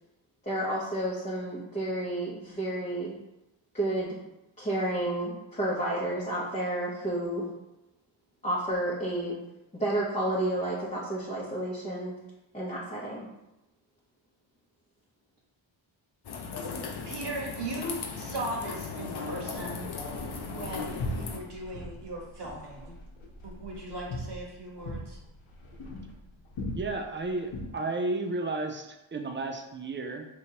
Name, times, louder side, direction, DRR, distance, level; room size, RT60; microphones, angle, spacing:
voice 1, 0.4-3.2 3.7-4.2 4.6-7.5 8.4-9.4 9.7-12.1 12.5-13.3, right 1 dB, 15° left, -8 dB, 0.8 m, -31 dB
sound 1, 16.2-21.4, left 5 dB, 50° left, 0.6 m, -37 dB
voice 2, 17.0-20.2 20.5-23.0 23.4-25.2, right 1 dB, 55° right, -2 dB, 1.3 m, -38 dB
sound 2, 19.5-27.6, left 1 dB, 85° left, 1.0 m, -40 dB
voice 3, 26.8-30.3, right 2 dB, 25° right, 4 dB, 0.4 m, -33 dB
4.9 x 2.9 x 2.8 m, 0.92 s
wide cardioid pair, 110°, 49 cm